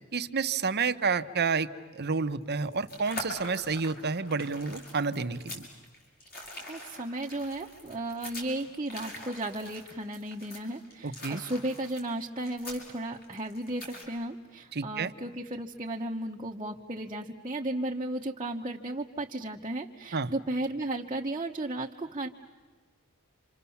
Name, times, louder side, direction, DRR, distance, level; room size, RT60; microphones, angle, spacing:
voice 1, 0.1-5.7 11.0-11.4 14.7-15.1 20.1-20.3, right 4 dB, 50° right, 9 dB, 1.0 m, -30 dB
sound 1, 2.5-14.0, left 1 dB, 45° left, 6.8 m, -44 dB
voice 2, 6.3-22.3, right 1 dB, 25° right, -1 dB, 1.1 m, -35 dB
30.0 x 27.0 x 7.1 m, 1.4 s
head